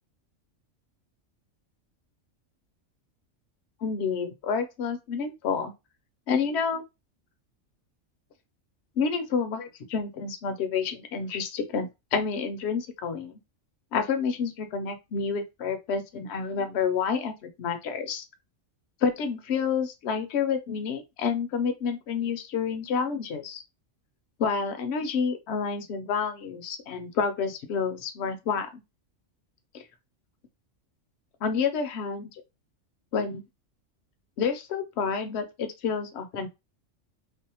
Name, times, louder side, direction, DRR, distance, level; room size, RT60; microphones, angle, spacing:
voice 1, 3.8-5.7 6.3-6.8 9.0-13.3 13.9-18.2 19.0-23.6 24.4-28.8 31.4-32.4 33.1-33.4 34.4-36.5, left 6 dB, 65° left, 0.8 m, -29 dB
2.6 x 2.0 x 2.7 m
omnidirectional pair, 1.3 m